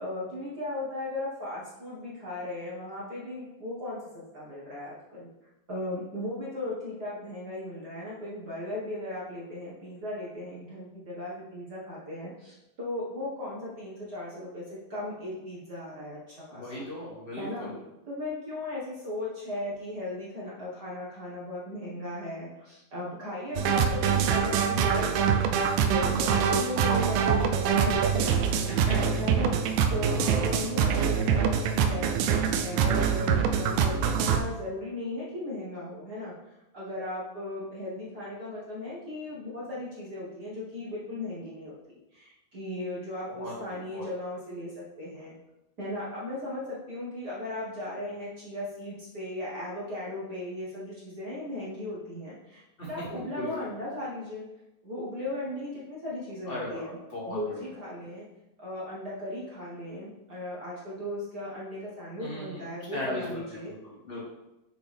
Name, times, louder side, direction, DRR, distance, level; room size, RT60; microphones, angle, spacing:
voice 1, 0.0-5.3 5.7-16.8 17.4-17.7 18.1-25.4 25.8-28.7 29.2-29.5 29.9-36.3 36.7-45.3 45.8-52.6 52.9-54.5 54.8-57.0 57.3-58.2 58.6-63.7, left 1 dB, 45° right, -7 dB, 1.3 m, -37 dB
voice 2, 16.5-17.8 28.9-29.4 30.1-30.7 43.3-44.1 52.8-53.7 56.5-57.7 62.2-62.6 62.9-64.2, left 1 dB, 20° left, -7 dB, 2.0 m, -38 dB
sound 1, 23.6-34.4, right 7 dB, 80° right, 2.5 m, -25 dB
8.0 x 6.2 x 3.5 m, 0.95 s
omnidirectional pair, 4.3 m